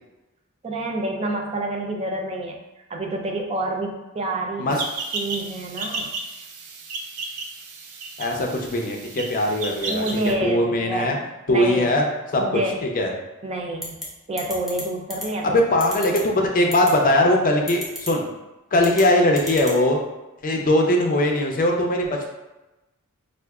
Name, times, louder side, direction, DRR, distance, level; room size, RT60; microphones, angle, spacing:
voice 1, 0.6-2.6 2.9-4.8 5.1-6.1 9.9-11.2 11.5-12.0 12.4-12.8 13.4-14.0 14.3-15.6, right 1 dB, 30° right, 2 dB, 0.4 m, -28 dB
sound 1, 4.7-10.3, right 3 dB, 90° right, 0.5 m, -33 dB
voice 2, 8.2-11.1 11.5-12.0 12.3-13.1 15.4-18.3 18.7-20.0 20.4-22.3, left 1 dB, 40° left, 1 dB, 0.5 m, -20 dB
sound 2, 13.8-14.0 14.4-14.8 15.1-15.2 15.8-16.2 16.7-16.9 17.7-18.1 18.8-19.0 19.4-19.8, left 1 dB, ahead, 0.7 m, -32 dB
4.6 x 2.4 x 2.3 m, 1.0 s
head